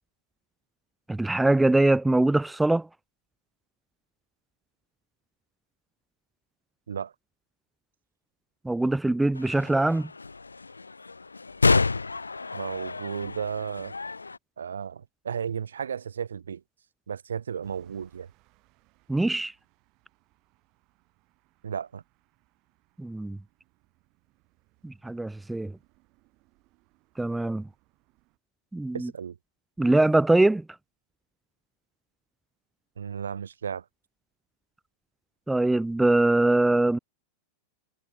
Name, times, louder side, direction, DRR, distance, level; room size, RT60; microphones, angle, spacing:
voice 1, 1.1-2.9 8.6-10.1 19.1-19.5 23.0-23.4 24.8-25.7 27.2-27.7 28.7-29.1 29.8-30.6 35.5-37.0, right 2 dB, 5° right, 0.4 m, -23 dB
sound 1, 9.4-14.4, left 3 dB, 80° left, 0.8 m, -29 dB
voice 2, 12.5-13.9 14.6-16.6 17.1-18.3 21.6-22.0 28.9-29.4 33.0-33.8, right 7 dB, 70° right, 1.4 m, -34 dB
sound 2, 17.6-28.4, right 24 dB, 40° right, 7.9 m, -67 dB
figure-of-eight pair, 90°, 0 cm